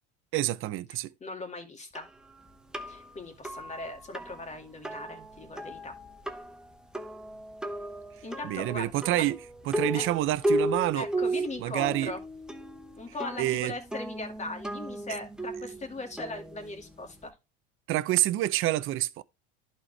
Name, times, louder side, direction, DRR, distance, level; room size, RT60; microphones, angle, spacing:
voice 1, 0.3-1.1 8.4-9.4 9.7-11.1 11.6-12.1 13.4-13.7 17.9-19.2, right 15 dB, 45° right, 0.6 m, -27 dB
voice 2, 1.2-2.1 2.9-6.0 8.2-9.3 9.8-10.1 10.9-12.2 13.0-17.3, left 2 dB, 25° left, 2.1 m, -39 dB
sound 1, 1.9-17.3, right 1 dB, ahead, 0.9 m, -35 dB
11.0 x 4.4 x 3.3 m
supercardioid pair, 120°, 29 cm